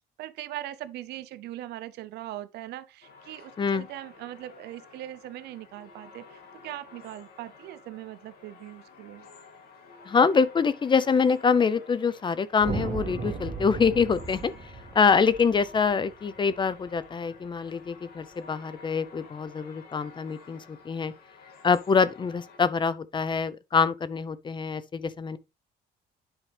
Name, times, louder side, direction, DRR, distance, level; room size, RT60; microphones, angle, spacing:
voice 1, 0.2-9.3, right 14 dB, 75° right, 0.7 m, -40 dB
sound 1, 3.0-22.6, left 4 dB, 65° left, 2.4 m, -51 dB
voice 2, 10.1-14.5 14.9-21.1 21.6-25.4, left 5 dB, 30° left, 0.7 m, -25 dB
sound 2, 12.6-17.0, right 4 dB, 45° right, 2.1 m, -36 dB
10.0 x 4.8 x 3.4 m
cardioid pair, 110°, 17 cm